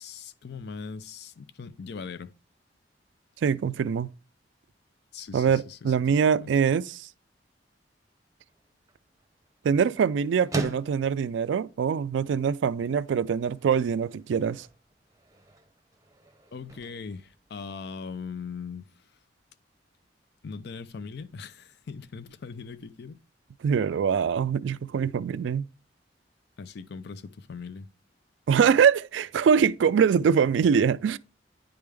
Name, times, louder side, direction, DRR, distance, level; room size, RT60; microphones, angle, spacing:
voice 1, 0.0-2.3 5.1-5.9 6.2-6.5 16.5-18.8 20.4-23.2 26.6-27.9, left 5 dB, 65° left, 0.4 m, -40 dB
voice 2, 3.4-4.1 5.3-7.1 9.6-14.7 23.6-25.7 28.5-31.2, right 7 dB, 80° right, 0.3 m, -23 dB
sound 1, 8.5-18.2, right 1 dB, 20° right, 0.7 m, -43 dB
10.0 x 3.5 x 3.3 m
head